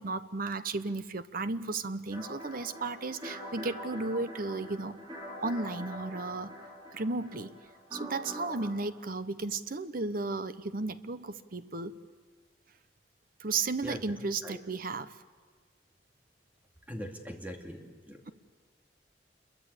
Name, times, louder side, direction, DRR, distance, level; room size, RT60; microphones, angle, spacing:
voice 1, 0.0-4.9 5.4-6.5 6.9-7.5 7.9-11.9 13.4-15.2, right 3 dB, 55° right, 12 dB, 1.0 m, -34 dB
sound 1, 2.1-8.7, equal, 25° right, 5.8 m, -44 dB
voice 2, 16.9-18.2, equal, 10° right, 2 dB, 2.5 m, -41 dB
27.5 x 22.5 x 8.4 m, 1.5 s
head